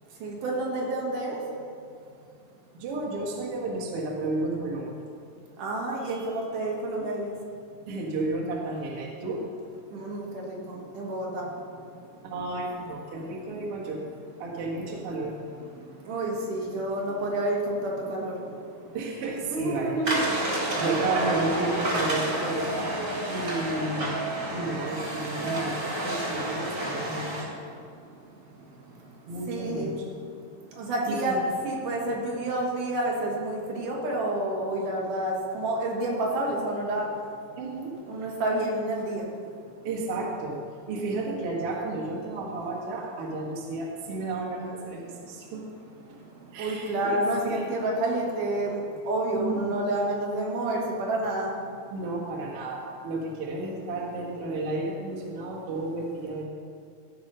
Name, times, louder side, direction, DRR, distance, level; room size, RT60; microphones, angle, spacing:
voice 1, 0.2-1.4 5.6-7.3 9.9-11.5 16.1-18.3 19.5-20.2 22.5-22.6 29.5-30.1 30.8-37.1 38.1-39.3 46.6-51.6, right 1 dB, 80° right, -2 dB, 3.2 m, -29 dB
voice 2, 2.7-5.1 7.0-7.1 7.9-9.4 12.2-14.0 14.4-15.3 18.9-23.0 23.3-24.1 24.5-27.5 29.3-30.1 31.1-31.4 37.6-37.9 39.8-40.6 40.9-45.6 46.5-47.7 49.3-49.7 51.9-56.4, right 2 dB, 55° right, -3 dB, 2.2 m, -32 dB
sound 1, 20.0-27.4, right 1 dB, 35° right, 1.5 m, -29 dB
14.5 x 5.5 x 5.5 m, 2.4 s
omnidirectional pair, 3.6 m